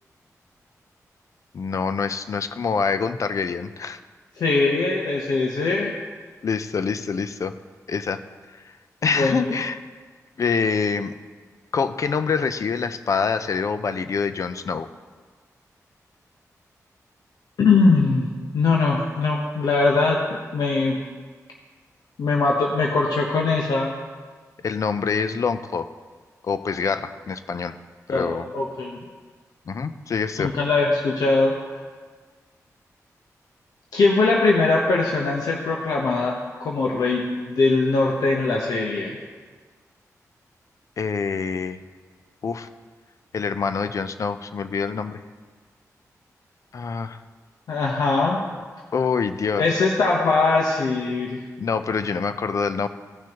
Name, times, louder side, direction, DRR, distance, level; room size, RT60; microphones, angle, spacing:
voice 1, 1.5-4.0 6.4-7.5 7.9-8.2 8.5-8.6 9.0-9.8 10.4-11.1 11.7-14.9 24.6-25.9 26.4-27.7 28.1-28.5 29.7-30.5 41.0-41.8 42.4-42.7 43.3-45.2 46.7-47.2 48.9-49.8 51.6-52.9, left 5 dB, 60° left, 11 dB, 0.5 m, -25 dB
voice 2, 4.4-5.9 9.0-9.5 17.6-20.2 20.5-21.0 22.2-23.9 28.1-29.0 30.4-31.8 33.9-39.2 47.7-48.4 49.6-51.4, left 3 dB, 85° left, -2 dB, 0.9 m, -21 dB
16.0 x 6.1 x 2.9 m, 1.5 s
cardioid pair, 85°, 6 cm